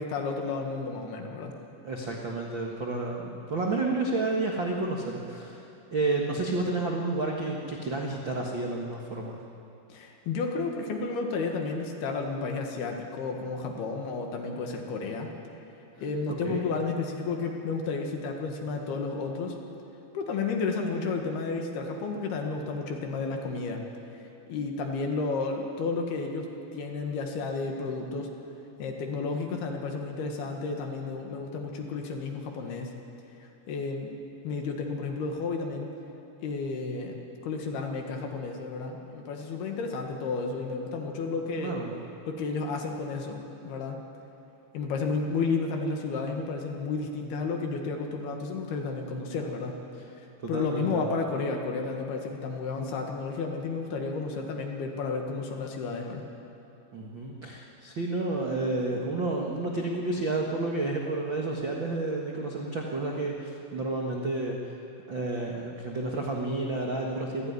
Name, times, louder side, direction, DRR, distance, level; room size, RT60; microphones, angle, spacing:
voice 1, 0.0-1.6 9.9-15.3 16.0-19.6 20.1-23.8 24.1-24.2 24.5-28.3 28.8-33.0 33.7-34.1 34.4-35.9 36.4-41.7 42.3-44.0 44.7-49.8 50.2-56.3, left 4 dB, 65° left, 2 dB, 3.5 m, -32 dB
voice 2, 1.8-5.6 5.9-9.4 16.4-16.6 41.6-41.9 50.4-51.0 56.9-64.8 65.1-67.5, right 2 dB, 85° right, -1 dB, 1.0 m, -30 dB
24.5 x 16.5 x 9.7 m, 2.8 s
omnidirectional pair, 5.2 m